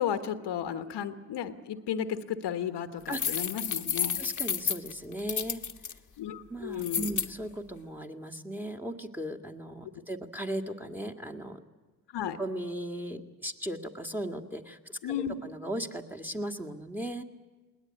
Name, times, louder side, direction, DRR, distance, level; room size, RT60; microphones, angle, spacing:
voice 1, 0.0-4.2 6.2-7.1 12.1-12.4 15.0-15.4, left 9 dB, 80° left, 10 dB, 1.3 m, -33 dB
sound 1, 3.1-5.9 6.8-7.3, left 7 dB, 45° left, 1.2 m, -31 dB
voice 2, 4.2-5.6 6.5-11.6 12.4-15.1 15.4-17.2, right 1 dB, 5° right, 6 dB, 1.9 m, -37 dB
20.5 x 18.5 x 9.7 m, 1.3 s
cardioid pair, 65°, 41 cm